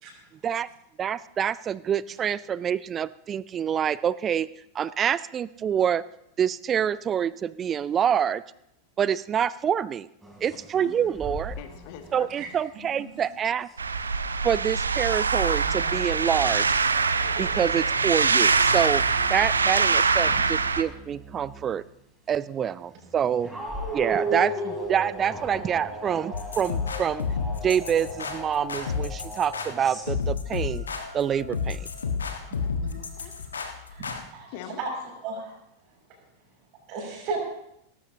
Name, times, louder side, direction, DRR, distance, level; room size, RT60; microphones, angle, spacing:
voice 1, 1.0-4.5 4.7-6.0 6.4-8.4 9.0-10.1 10.4-11.6 12.1-13.7 14.4-16.6 17.4-19.0 19.3-21.8 22.3-23.5 23.9-27.3 27.6-30.8 31.1-31.9, right 8 dB, 25° right, 20 dB, 0.4 m, -26 dB
sound 1, 10.2-12.5 13.7-14.7 15.4-21.9 22.9-30.1, right 1 dB, 10° right, 3.2 m, -38 dB
voice 2, 11.6-12.3 32.4-33.3 34.5-34.8, left 9 dB, 45° left, 7 dB, 1.6 m, -43 dB
sound 2, 13.8-20.8, right 4 dB, 75° right, 0.6 m, -23 dB
sound 3, 26.3-34.2, left 5 dB, 70° left, 1.4 m, -31 dB
voice 3, 35.2-35.5 36.9-37.4, right 4 dB, 40° right, 0 dB, 6.0 m, -33 dB
18.5 x 14.5 x 2.8 m, 0.79 s
figure-of-eight pair, 90°, 0 cm